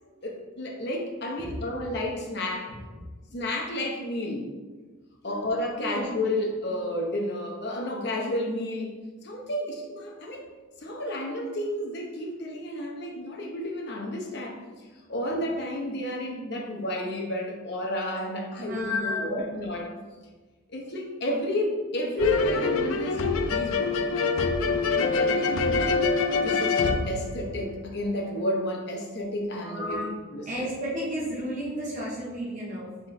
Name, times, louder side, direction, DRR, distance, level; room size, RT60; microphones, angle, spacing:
voice 1, 0.2-2.7 3.3-4.5 5.2-9.0 9.2-10.4 10.8-14.6 15.1-19.9 20.7-23.9 24.9-25.9 26.2-30.7, left 1 dB, 50° left, 0 dB, 0.7 m, -31 dB
voice 2, 5.8-6.2 10.3-10.5 14.9-15.1 18.6-19.5 29.6-30.1 30.4-32.9, right 1 dB, 35° right, -6 dB, 1.1 m, -34 dB
sound 1, 22.2-28.0, left 4 dB, 75° left, 0.4 m, -25 dB
3.6 x 3.6 x 4.1 m, 1.3 s
head